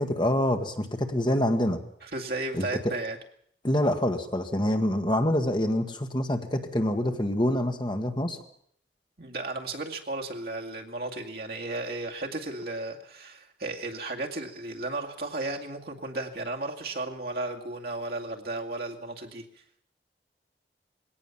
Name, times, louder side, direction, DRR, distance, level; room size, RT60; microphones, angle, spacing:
voice 1, 0.0-1.8 2.5-2.7 3.6-8.4, left 1 dB, 25° left, 5 dB, 1.6 m, -26 dB
voice 2, 2.0-3.2 9.2-19.4, right 2 dB, 60° right, 1 dB, 2.3 m, -34 dB
21.0 x 17.5 x 7.3 m, 0.66 s
head